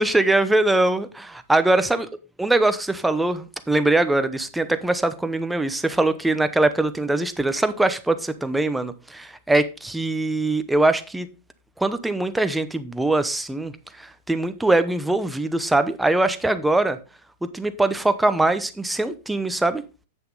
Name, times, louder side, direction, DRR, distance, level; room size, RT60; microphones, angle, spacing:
voice 1, 0.0-2.1 2.4-11.3 11.8-13.7 14.0-17.0 17.4-19.8, right 2 dB, 5° right, 0.8 m, -22 dB
8.2 x 6.8 x 3.9 m
hypercardioid pair, 120°, 0 cm